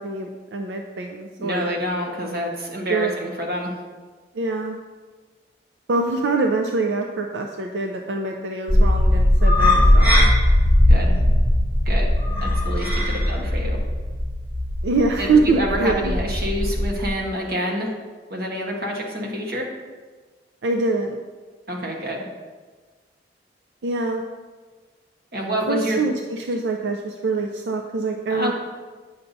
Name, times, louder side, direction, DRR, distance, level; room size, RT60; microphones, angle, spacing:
voice 1, 0.0-1.7 2.9-3.1 4.3-4.8 5.9-10.3 14.8-16.1 20.6-21.2 23.8-24.2 25.7-28.5, right 3 dB, 90° right, 2 dB, 0.5 m, -24 dB
voice 2, 1.4-3.7 10.9-11.2 11.8-12.1 12.4-13.8 15.2-17.9 18.3-19.7 21.7-22.3 25.3-26.1 28.3-28.5, equal, 60° right, 0 dB, 1.2 m, -27 dB
sound 1, 8.7-17.1, left 1 dB, 10° right, 1.6 m, -19 dB
9.4 x 5.7 x 2.7 m, 1.4 s
head